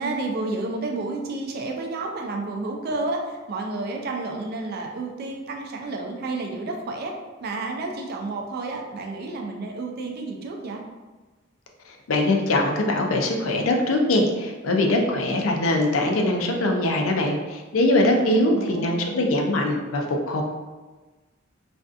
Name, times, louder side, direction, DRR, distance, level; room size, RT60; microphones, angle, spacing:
voice 1, 0.0-7.1 7.4-10.8 18.3-19.3, right 2 dB, 50° right, 2 dB, 0.4 m, -31 dB
voice 2, 12.1-20.4, left 1 dB, 85° left, 2 dB, 0.4 m, -22 dB
2.5 x 2.3 x 2.4 m, 1.3 s
head